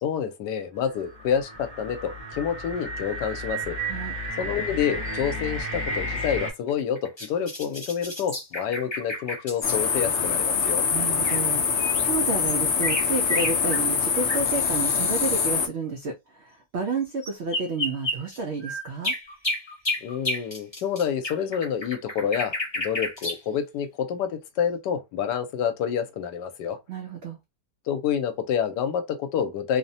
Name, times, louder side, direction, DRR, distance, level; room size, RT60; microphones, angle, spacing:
voice 1, 0.0-3.8 4.4-10.8 20.0-26.8 27.9-29.8, left 8 dB, 90° left, 1.2 m, -28 dB
sound 1, 0.9-6.5, equal, 10° right, 0.7 m, -32 dB
sound 2, 6.2-9.8 11.3-11.4 11.8-15.5 17.2-23.4, left 1 dB, 25° left, 0.7 m, -32 dB
sound 3, 9.6-15.7, left 6 dB, 65° left, 0.7 m, -24 dB
voice 2, 10.9-19.1 26.9-27.4, right 4 dB, 85° right, 0.6 m, -31 dB
3.0 x 2.1 x 2.6 m
omnidirectional pair, 1.8 m